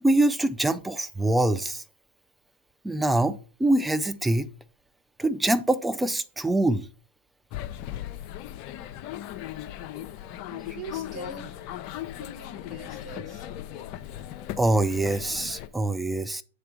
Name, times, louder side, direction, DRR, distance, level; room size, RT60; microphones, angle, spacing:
voice 1, 0.0-1.8 2.8-4.5 5.2-6.9 14.6-16.4, right 1 dB, 5° right, 0.5 m, -24 dB
sound 1, 7.5-15.7, left 12 dB, 45° left, 0.6 m, -38 dB
voice 2, 10.5-11.7 12.2-13.7, right 3 dB, 35° right, 2.9 m, -43 dB
7.8 x 3.3 x 5.1 m
hypercardioid pair, 105°, 0 cm